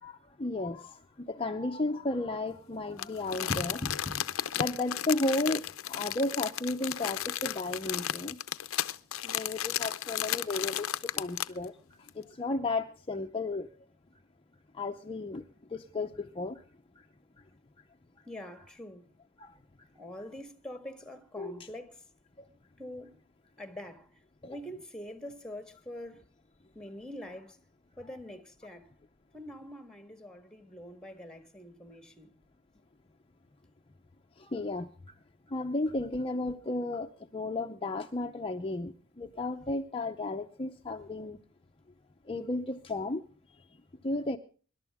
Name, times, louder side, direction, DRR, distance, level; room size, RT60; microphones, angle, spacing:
voice 1, 0.0-4.3 4.5-8.4 9.2-13.7 14.7-15.4 15.7-16.6 17.0-17.1 19.4-19.6 21.4-21.5 22.4-22.5 24.4-24.6 34.4-35.1 35.5-41.4 42.3-43.2 43.5-44.4, left 2 dB, 25° left, 0.7 m, -34 dB
Crumpling crinkling, 3.0-11.6 12.1-12.2, left 11 dB, 80° left, 0.7 m, -34 dB
voice 2, 18.2-19.1 19.9-22.0 22.8-23.2 23.6-24.1 24.4-26.2 26.7-27.6 28.0-28.9 29.3-32.3, equal, 5° left, 1.6 m, -44 dB
25.0 x 12.0 x 3.5 m
head